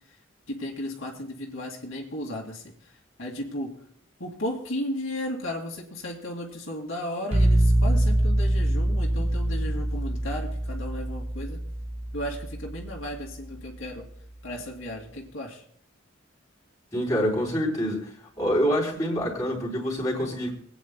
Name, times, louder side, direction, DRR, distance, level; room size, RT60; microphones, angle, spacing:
voice 1, 0.5-2.6 3.2-3.8 4.2-11.6 12.1-14.0 14.4-15.6, left 1 dB, 80° left, -1 dB, 2.2 m, -34 dB
sound 1, 7.3-13.1, right 1 dB, 30° right, 1.3 m, -24 dB
voice 2, 16.9-18.1 18.4-20.5, equal, 20° left, -5 dB, 3.8 m, -26 dB
27.0 x 9.1 x 2.2 m, 0.64 s
head